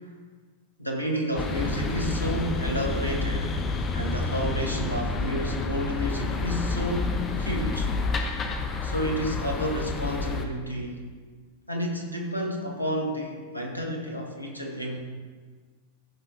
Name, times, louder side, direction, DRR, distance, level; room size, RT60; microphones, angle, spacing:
voice 1, 0.8-3.5 3.9-7.9 8.8-11.0 11.7-15.0, equal, 90° left, 1 dB, 1.3 m, -31 dB
sound 1, 1.4-10.4, left 3 dB, 25° left, 0.9 m, -29 dB
14.5 x 5.6 x 3.6 m, 1.5 s
figure-of-eight pair, 90°, 0 cm